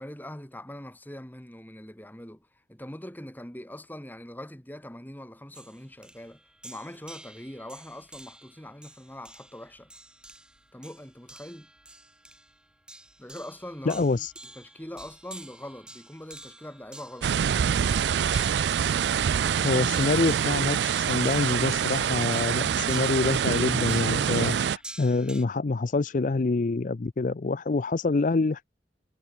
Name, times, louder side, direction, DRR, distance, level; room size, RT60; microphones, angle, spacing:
voice 1, 0.0-9.9 10.7-11.7 13.2-14.3 14.6-17.4, left 1 dB, 10° left, 2.7 m, -42 dB
sound 1, 5.5-25.5, right 1 dB, 5° right, 2.0 m, -49 dB
voice 2, 13.9-14.3 19.6-28.6, left 3 dB, 45° left, 0.5 m, -26 dB
sound 2, 17.2-24.8, right 8 dB, 75° right, 0.4 m, -25 dB
sound 3, 22.6-22.8 23.1-23.2, right 7 dB, 45° right, 4.1 m, -57 dB
head